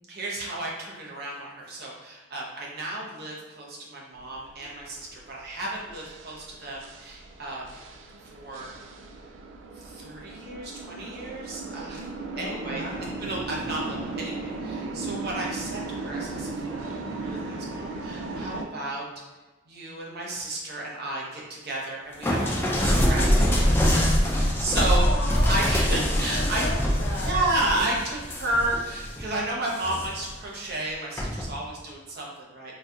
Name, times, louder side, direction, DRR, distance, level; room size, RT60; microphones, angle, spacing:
voice 1, 0.1-7.8 8.2-8.7 9.7-12.9 13.2-19.0 19.7-23.8 24.2-25.1 25.5-26.6 27.2-32.8, right 2 dB, 55° right, -3 dB, 0.8 m, -32 dB
sound 1, 4.2-18.6, right 3 dB, 75° right, 0.4 m, -37 dB
voice 2, 12.3-13.2 24.9-25.5 26.3-27.4, left 2 dB, 55° left, -4 dB, 0.8 m, -35 dB
sound 2, 22.2-29.2 29.7-30.3 31.2-31.5, equal, 10° left, 0.5 m, -24 dB
3.9 x 2.8 x 2.4 m, 1.2 s
head